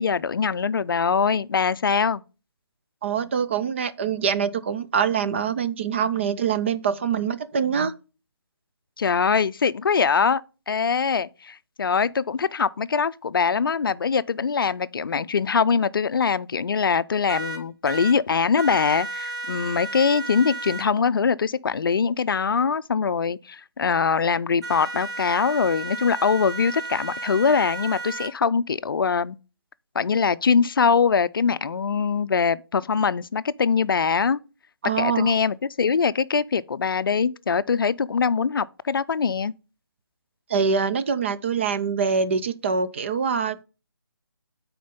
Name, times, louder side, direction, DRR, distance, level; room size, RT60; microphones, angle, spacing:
voice 1, 0.0-2.2 9.0-10.4 10.7-29.4 29.9-34.4 35.0-39.5, left 5 dB, 60° left, 0.4 m, -23 dB
voice 2, 3.0-7.9 34.8-35.3 40.5-43.6, right 6 dB, 30° right, 0.5 m, -24 dB
sound 1, 17.3-18.1 18.6-20.8 24.6-28.3, right 2 dB, 45° right, 3.6 m, -33 dB
9.3 x 4.4 x 5.2 m
figure-of-eight pair, 155°, 13 cm